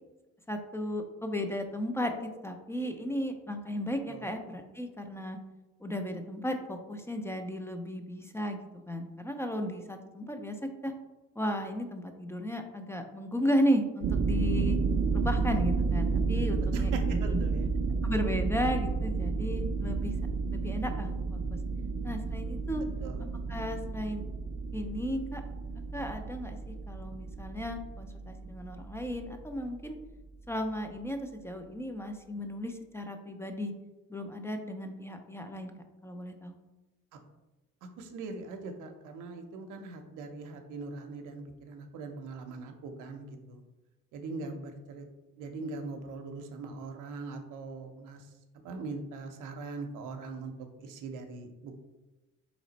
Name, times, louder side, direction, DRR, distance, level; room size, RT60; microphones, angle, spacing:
voice 1, 0.5-5.4 5.8-10.9 11.4-14.8 15.1-17.4 18.0-20.1 20.5-21.4 22.0-22.8 23.5-24.2 24.7-25.4 25.9-30.0 30.5-33.7 34.1-35.7 36.0-36.6, equal, 10° left, 5 dB, 0.5 m, -34 dB
sound 1, 14.0-29.8, right 4 dB, 45° right, 0.4 m, -31 dB
voice 2, 16.7-17.7 23.0-23.2 38.0-43.6 44.1-45.1 45.4-48.2 48.6-50.5 50.8-51.9, right 3 dB, 90° right, 5 dB, 0.7 m, -41 dB
4.0 x 3.1 x 4.0 m, 1.1 s
cardioid pair, 90°, 30 cm